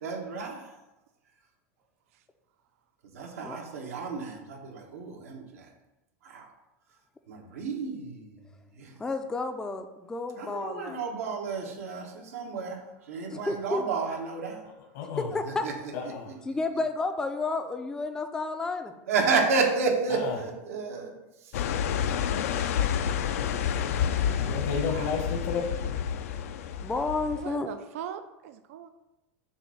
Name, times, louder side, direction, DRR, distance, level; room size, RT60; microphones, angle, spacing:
voice 1, 0.0-0.7 3.1-5.6 6.2-6.5 7.3-8.4 8.8-8.9 10.4-12.8 13.1-14.6 15.6-15.7 19.1-21.1 24.9-25.1, right 4 dB, 90° right, 1 dB, 1.3 m, -31 dB
voice 2, 9.0-11.0 13.3-13.8 15.2-15.7 16.4-18.9 24.0-24.7 26.8-27.7, left 3 dB, 10° left, 6 dB, 0.4 m, -31 dB
voice 3, 14.9-15.3 15.9-16.3 20.1-20.4 22.4-22.7 24.5-25.7, left 5 dB, 65° left, 1 dB, 1.1 m, -32 dB
sound 1, 21.5-27.5, left 8 dB, 80° left, 0.5 m, -29 dB
voice 4, 27.4-28.9, right 9 dB, 75° right, 9 dB, 0.4 m, -39 dB
6.9 x 2.6 x 5.6 m, 0.97 s
supercardioid pair, 135°, 8 cm